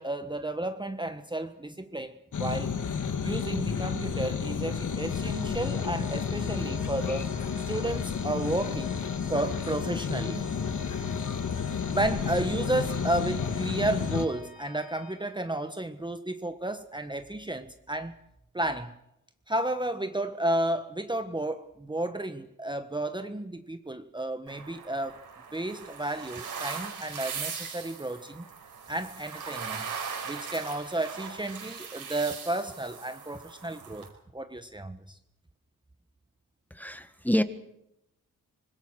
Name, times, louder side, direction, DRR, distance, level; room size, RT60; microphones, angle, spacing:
voice 1, 0.0-2.7 3.2-7.3 7.7-9.0 9.3-10.5 11.9-18.1 18.5-19.0 19.5-25.2 25.5-28.5 28.9-29.9 30.3-34.1 34.3-35.2, right 1 dB, 15° right, 1.3 m, -32 dB
sound 1, 2.3-14.3, left 6 dB, 60° left, 1.9 m, -31 dB
Organ, 4.9-15.8, left 3 dB, 80° left, 7.5 m, -48 dB
sound 2, 24.5-34.1, right 6 dB, 80° right, 5.2 m, -40 dB
voice 2, 36.7-37.4, equal, 5° left, 1.6 m, -27 dB
25.5 x 20.5 x 6.5 m
cardioid pair, 75°, 35 cm